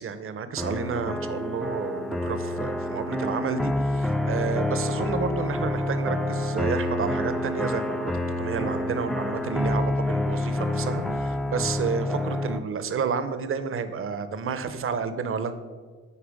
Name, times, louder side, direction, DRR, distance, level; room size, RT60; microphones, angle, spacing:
voice 1, 0.0-8.1 8.4-15.5, right 6 dB, 45° right, 11 dB, 0.7 m, -30 dB
sound 1, 0.6-12.6, left 1 dB, ahead, 0.4 m, -28 dB
8.8 x 4.2 x 5.1 m, 1.5 s
cardioid pair, 90°, 30 cm